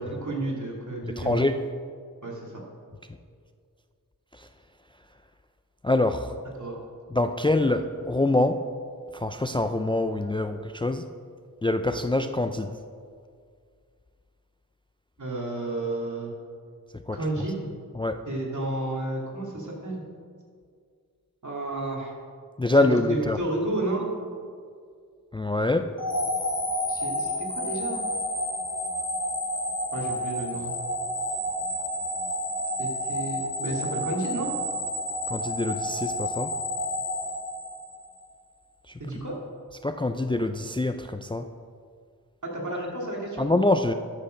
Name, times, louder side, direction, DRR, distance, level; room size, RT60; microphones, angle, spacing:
voice 1, 0.0-1.5 2.2-2.6 6.6-6.8 15.2-16.3 17.1-17.7 18.3-20.0 21.4-22.1 22.7-24.1 26.9-28.0 29.9-30.7 32.8-34.5 39.0-39.4 42.4-43.5, right 2 dB, 55° right, -2 dB, 2.6 m, -31 dB
voice 2, 1.0-1.5 4.3-4.5 5.8-6.3 7.1-8.6 9.1-11.1 11.6-12.7 17.1-17.2 17.9-18.2 22.6-23.4 25.3-25.9 35.3-36.5 39.8-41.5 43.4-43.9, left 2 dB, 15° left, 8 dB, 0.4 m, -25 dB
sound 1, 26.0-38.1, left 1 dB, 65° left, 2.5 m, -30 dB
13.0 x 6.7 x 5.1 m, 2.2 s
wide cardioid pair, 55°, 35 cm